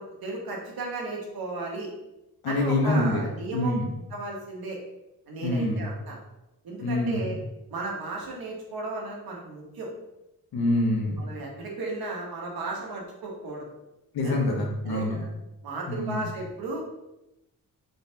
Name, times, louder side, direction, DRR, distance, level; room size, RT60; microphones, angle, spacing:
voice 1, 0.0-1.9 2.4-3.7 4.1-4.8 5.3-6.2 6.6-7.4 7.7-9.9 11.2-13.6 14.2-14.4 14.8-15.3 15.6-16.8, right 2 dB, 75° right, -1 dB, 1.2 m, -35 dB
voice 2, 2.4-3.2 3.5-3.9 5.4-5.8 6.8-7.3 10.5-11.2 14.1-15.2 15.9-16.3, left 1 dB, 90° left, 0 dB, 1.0 m, -26 dB
3.9 x 3.4 x 2.8 m, 0.93 s
cardioid pair, 90°, 36 cm